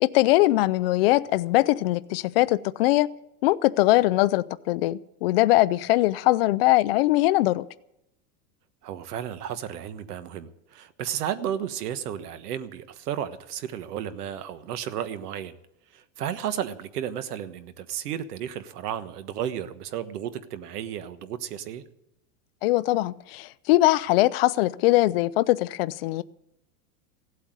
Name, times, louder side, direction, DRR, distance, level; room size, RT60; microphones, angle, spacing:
voice 1, 0.0-3.1 3.4-7.7 22.6-26.2, left 17 dB, 45° left, 0.5 m, -21 dB
voice 2, 8.8-15.6 15.9-21.8, right 10 dB, 85° right, 1.4 m, -33 dB
16.5 x 8.3 x 9.4 m
supercardioid pair, 165°, 45 cm